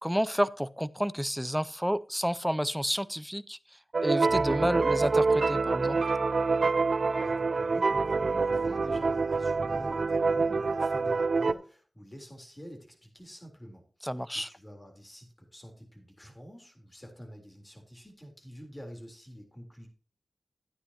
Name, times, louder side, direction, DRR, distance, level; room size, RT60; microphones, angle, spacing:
voice 1, 0.0-3.6 4.0-6.0 14.0-14.5, equal, ahead, 0.5 m, -30 dB
sound 1, 3.9-11.5, right 4 dB, 65° right, 0.5 m, -26 dB
voice 2, 7.2-14.1 14.5-19.9, equal, 20° left, 3.6 m, -47 dB
13.0 x 9.5 x 2.9 m
wide cardioid pair, 75°, 0 cm